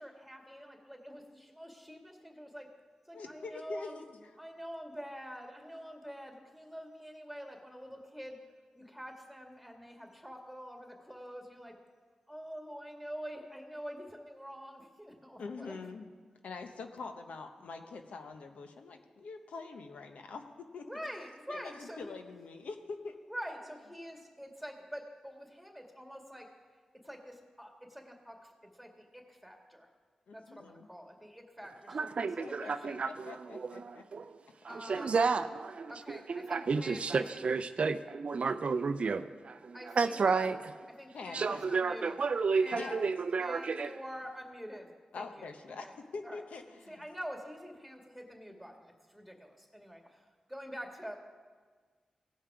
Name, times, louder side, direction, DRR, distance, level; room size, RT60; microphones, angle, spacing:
voice 1, 0.0-2.7 3.1-4.0 4.4-8.4 8.7-11.7 12.3-15.8 20.8-22.1 23.3-26.5 27.0-29.9 30.3-33.0 34.7-35.2 35.9-37.4 39.7-40.5 41.0-42.2 42.6-43.0 43.4-45.5 45.8-45.9 46.2-46.4 46.9-51.2, equal, ahead, 2 dB, 2.2 m, -46 dB
voice 2, 3.1-4.4 15.4-16.1 16.4-20.4 20.7-20.8 21.5-23.2 30.3-30.9 32.2-34.0 35.0-35.1 41.1-41.7 42.7-43.1 45.1-47.0, left 4 dB, 80° left, 6 dB, 0.8 m, -45 dB
voice 3, 31.9-34.4 34.6-40.6 41.3-43.9, right 4 dB, 60° right, 11 dB, 0.4 m, -32 dB
17.0 x 5.7 x 4.9 m, 1.5 s
cardioid pair, 50°, 2 cm